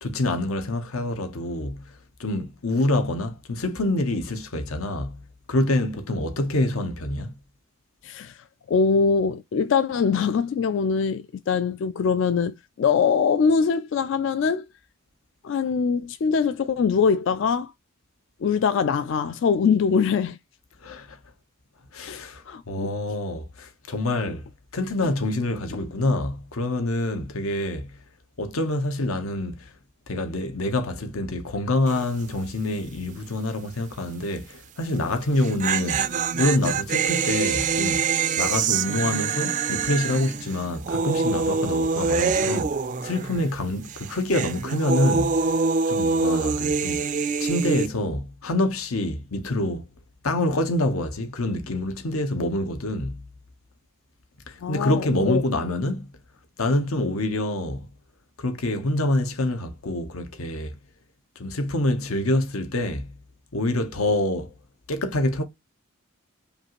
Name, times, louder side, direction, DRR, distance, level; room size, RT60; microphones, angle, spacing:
voice 1, 0.0-5.2 5.5-7.3 20.8-21.2 21.9-27.9 28.4-29.7 30.1-42.8 43.0-49.9 50.2-53.2 54.5-56.1 56.6-57.9 58.4-60.8 61.4-63.1 63.5-64.5 64.9-65.4, left 1 dB, 85° left, 0.9 m, -26 dB
voice 2, 8.0-14.7 15.4-17.7 18.4-20.4 22.1-22.9 54.6-55.4, left 5 dB, 60° left, 0.3 m, -23 dB
sound 1, 31.9-32.2 32.5-32.6 35.2-43.6 43.8-47.9, right 5 dB, 35° right, 0.3 m, -25 dB
5.2 x 2.5 x 3.0 m
head